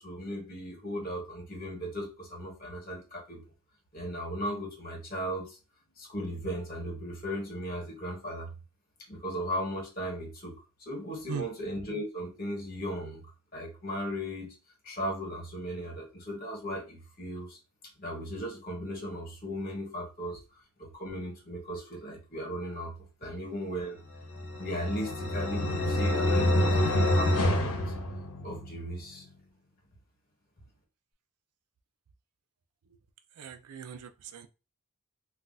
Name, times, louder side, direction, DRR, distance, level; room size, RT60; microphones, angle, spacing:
voice 1, 0.0-3.4 3.9-5.6 6.0-8.5 9.1-10.5 10.9-13.2 13.5-14.5 14.8-17.6 18.0-20.4 20.8-22.9 23.2-24.0 24.6-27.8 28.4-29.2, equal, 40° left, 0 dB, 1.3 m, -36 dB
sound 1, 24.2-28.8, left 1 dB, 75° left, 0.8 m, -27 dB
voice 2, 33.4-34.5, right 6 dB, 85° right, 9 dB, 0.4 m, -39 dB
2.4 x 2.3 x 3.9 m, 0.31 s
head